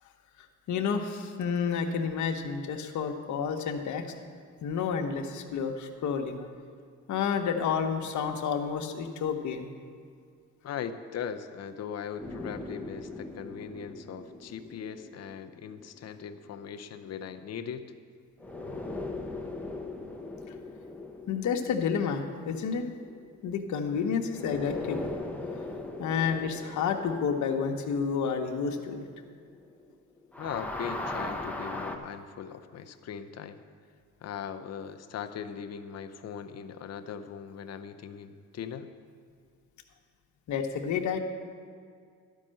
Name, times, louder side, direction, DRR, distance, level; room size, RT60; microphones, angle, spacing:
voice 1, 0.7-4.0 4.6-6.4 7.1-9.7 21.3-22.9 23.4-25.0 26.0-29.0 40.5-41.2, left 6 dB, 70° left, 4 dB, 1.1 m, -30 dB
voice 2, 10.6-17.8 30.4-33.6 34.2-38.9, left 7 dB, 55° left, 8 dB, 0.7 m, -39 dB
sound 1, 12.2-16.7 18.4-23.9 24.3-30.0 30.2-32.0, left 2 dB, 5° left, 0.9 m, -40 dB
12.0 x 5.5 x 7.6 m, 2.1 s
cardioid pair, 90°, 30 cm